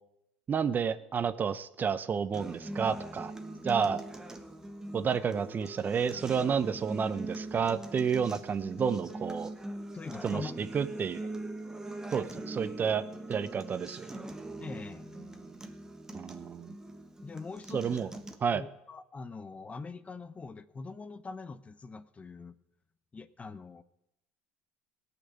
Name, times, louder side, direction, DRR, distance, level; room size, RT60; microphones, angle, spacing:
voice 1, 0.5-3.3 3.6-4.0 4.9-9.5 10.2-11.2 12.1-14.2 16.1-16.7 17.7-18.1 18.4-18.6, right 6 dB, 35° right, 14 dB, 0.7 m, -30 dB
Acoustic guitar, 2.3-18.3, right 1 dB, 10° right, 1.4 m, -42 dB
voice 2, 9.9-10.7 11.2-11.3 14.6-15.1 17.2-18.0 18.5-22.5 23.1-23.8, left 4 dB, 25° left, 14 dB, 0.7 m, -43 dB
17.0 x 6.0 x 8.4 m, 0.84 s
hypercardioid pair, 80°, 5 cm